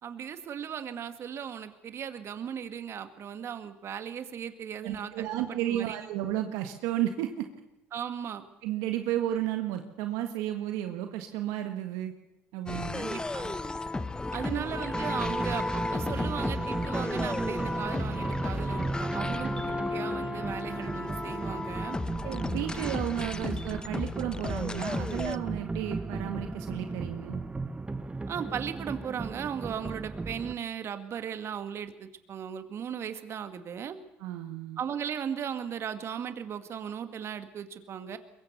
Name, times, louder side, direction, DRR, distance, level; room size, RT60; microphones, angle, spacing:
voice 1, 0.0-6.0 7.9-8.4 13.0-13.6 14.3-22.0 22.7-22.8 28.3-34.0 34.8-38.2, right 8 dB, 50° right, 9 dB, 2.1 m, -37 dB
voice 2, 4.8-7.5 8.6-12.1 12.5-13.0 14.4-14.7 22.2-27.4 34.2-34.8, right 12 dB, 75° right, 6 dB, 1.6 m, -33 dB
sound 1, 12.7-25.4, left 2 dB, 15° left, 1.0 m, -34 dB
sound 2, 14.9-30.5, right 3 dB, 20° right, 1.2 m, -36 dB
23.0 x 22.5 x 6.9 m, 0.93 s
hypercardioid pair, 70°, 6 cm